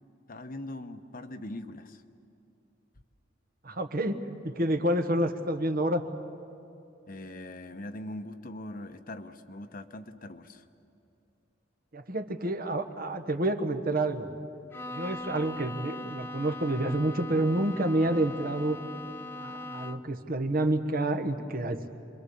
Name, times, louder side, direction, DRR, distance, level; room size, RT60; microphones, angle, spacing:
voice 1, 0.3-2.0 7.1-10.6, left 1 dB, 50° left, 7 dB, 1.1 m, -41 dB
voice 2, 3.6-6.0 11.9-14.3 14.9-18.8 19.4-21.8, right 1 dB, 50° right, 6 dB, 1.4 m, -28 dB
Bowed string instrument, 14.7-20.2, left 2 dB, 10° left, 0.6 m, -40 dB
28.5 x 23.0 x 7.0 m, 2.7 s
head